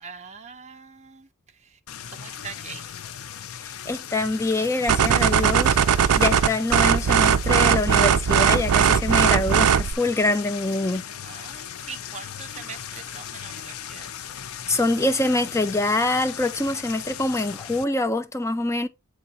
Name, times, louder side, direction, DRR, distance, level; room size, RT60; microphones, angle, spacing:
voice 1, 0.0-1.3 1.6-1.8 2.1-3.0 11.2-14.1, right 5 dB, 30° right, 0.8 m, -42 dB
sound 1, 1.9-17.8, left 9 dB, 70° left, 0.5 m, -38 dB
voice 2, 3.9-5.8 6.2-11.0 14.7-18.9, left 2 dB, 15° left, 0.6 m, -24 dB
sound 2, 4.9-9.9, right 7 dB, 70° right, 0.4 m, -19 dB
7.6 x 3.9 x 4.2 m
head